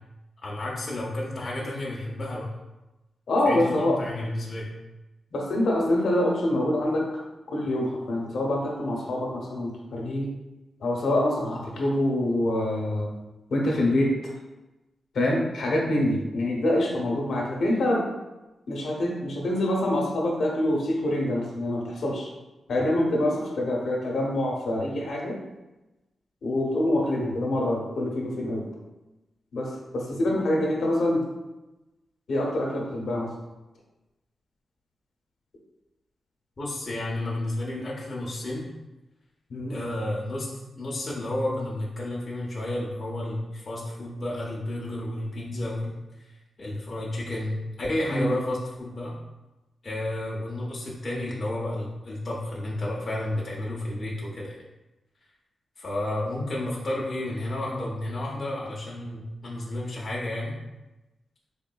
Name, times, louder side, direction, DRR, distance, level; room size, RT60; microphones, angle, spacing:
voice 1, 0.4-2.5 3.5-4.7 36.6-38.7 39.7-40.5 40.7-46.0 46.6-49.2 49.8-54.6 55.8-60.5, left 1 dB, 30° left, -4 dB, 0.5 m, -31 dB
voice 2, 3.3-4.0 5.3-7.2 7.5-10.3 10.8-13.1 13.5-14.1 15.1-18.1 18.7-22.3 22.7-25.4 26.4-28.6 29.5-31.3 32.3-33.3 39.5-39.8 48.1-48.4, left 1 dB, 65° left, -1 dB, 0.8 m, -25 dB
3.6 x 3.5 x 2.2 m, 1.0 s
wide cardioid pair, 165°, 0 cm